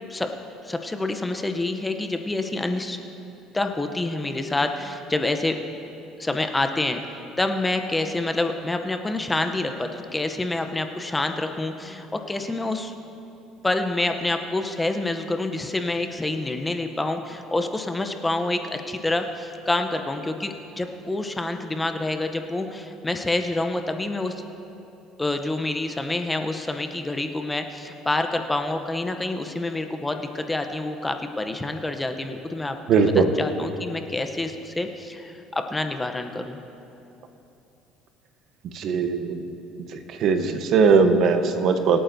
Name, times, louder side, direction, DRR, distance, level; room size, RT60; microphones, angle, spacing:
voice 1, 0.6-3.0 3.5-5.6 6.2-12.9 13.6-24.3 25.2-36.6, left 2 dB, 10° left, 6 dB, 0.6 m, -27 dB
voice 2, 32.9-33.3 38.7-39.4 40.2-42.0, right 5 dB, 55° right, 8 dB, 0.9 m, -19 dB
25.0 x 8.7 x 2.6 m, 2.8 s
cardioid pair, 125°, 0 cm